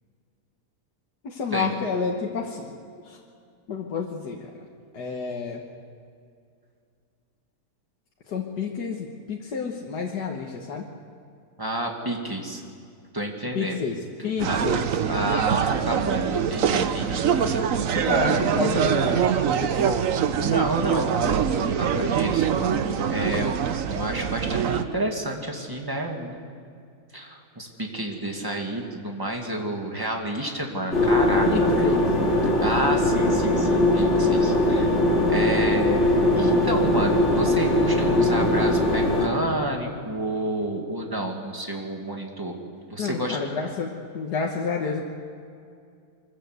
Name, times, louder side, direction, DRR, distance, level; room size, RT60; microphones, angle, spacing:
voice 1, 1.2-2.8 3.0-3.2 3.7-4.5 4.9-5.6 8.3-10.9 13.5-15.0 18.1-20.0 23.2-23.5 31.4-32.1 43.0-45.0, left 5 dB, 85° left, 0 dB, 1.9 m, -30 dB
voice 2, 11.6-12.6 13.1-13.8 14.5-14.7 15.0-17.9 20.3-22.8 23.1-23.6 23.9-26.4 27.1-31.9 32.4-35.0 35.3-36.0 36.4-42.5 42.9-43.4, right 1 dB, 15° right, 1 dB, 2.2 m, -30 dB
sound 1, 14.4-24.8, right 8 dB, 60° right, 1.2 m, -24 dB
sound 2, 30.9-39.3, left 1 dB, 40° left, 3.4 m, -21 dB
24.5 x 14.5 x 8.1 m, 2.4 s
omnidirectional pair, 1.7 m